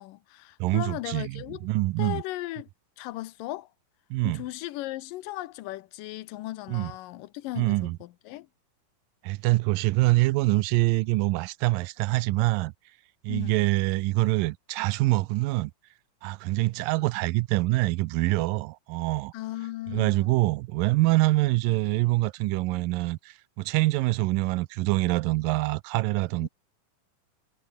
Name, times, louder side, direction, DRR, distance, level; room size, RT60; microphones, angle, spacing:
voice 1, 0.0-1.6 2.0-2.7 3.0-3.7 4.2-8.5 13.3-13.6 19.3-20.3 26.4-26.5, left 17 dB, 80° left, 2.4 m, -37 dB
voice 2, 0.6-2.2 4.1-4.4 6.7-6.9 7.6-8.0 9.2-12.7 13.2-15.7 16.2-19.3 19.9-26.5, right 20 dB, 85° right, 2.3 m, -25 dB
omnidirectional pair, 3.9 m